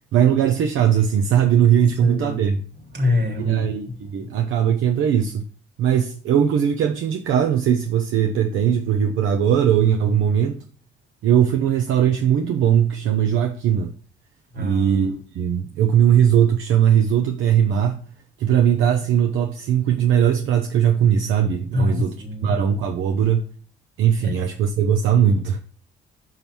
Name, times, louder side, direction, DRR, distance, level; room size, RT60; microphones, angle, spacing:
voice 1, 0.1-2.6 3.4-5.4 5.8-10.6 11.2-13.9 14.6-18.0 18.4-22.1 22.4-23.5 24.0-25.6, right 9 dB, 80° right, 0.7 m, -19 dB
voice 2, 1.8-2.4 2.9-3.9 14.5-15.1 21.7-22.5 24.2-24.3, left 3 dB, 60° right, 2.1 m, -26 dB
5.7 x 5.4 x 4.5 m
cardioid pair, 90°, 20 cm